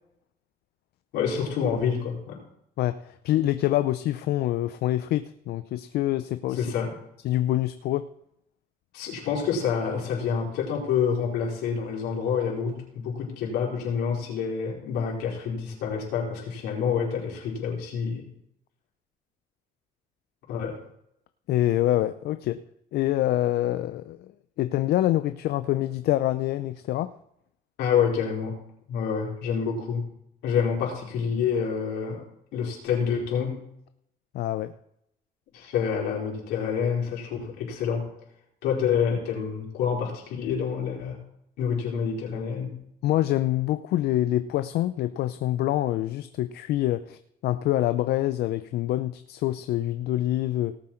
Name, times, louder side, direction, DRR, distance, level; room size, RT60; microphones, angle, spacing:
voice 1, 1.1-2.4 6.5-7.0 8.9-18.3 20.5-20.8 27.8-28.6 28.9-30.1 30.4-32.3 32.5-33.7 35.5-38.1 38.6-41.2 41.6-42.7, left 7 dB, 85° left, -3 dB, 4.5 m, -27 dB
voice 2, 2.8-6.7 7.2-8.1 21.5-22.6 22.9-27.1 34.3-34.7 43.0-50.8, left 14 dB, 70° left, 11 dB, 0.5 m, -26 dB
18.0 x 7.5 x 4.4 m, 0.76 s
cardioid pair, 110°, 17 cm